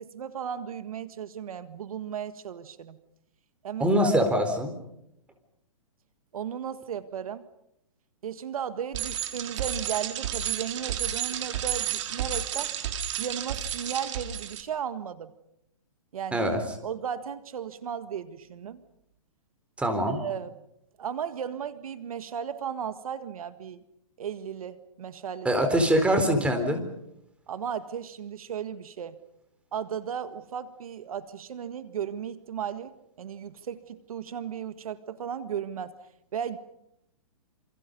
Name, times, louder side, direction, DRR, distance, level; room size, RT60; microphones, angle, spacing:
voice 1, 0.0-3.0 3.6-4.1 6.3-7.4 8.2-12.7 13.2-15.3 16.1-16.4 16.8-18.8 20.2-20.6 21.0-23.8 24.2-25.5 27.5-29.2 29.7-36.0 36.3-36.6, right 8 dB, 75° right, 11 dB, 1.7 m, -35 dB
voice 2, 3.8-4.7 16.3-16.6 19.8-20.2 25.4-26.8, equal, 5° right, 6 dB, 4.2 m, -23 dB
Bicycle, 8.9-14.6, right 10 dB, 55° right, 3.8 m, -32 dB
29.0 x 28.0 x 5.4 m, 0.80 s
hypercardioid pair, 145°, 19 cm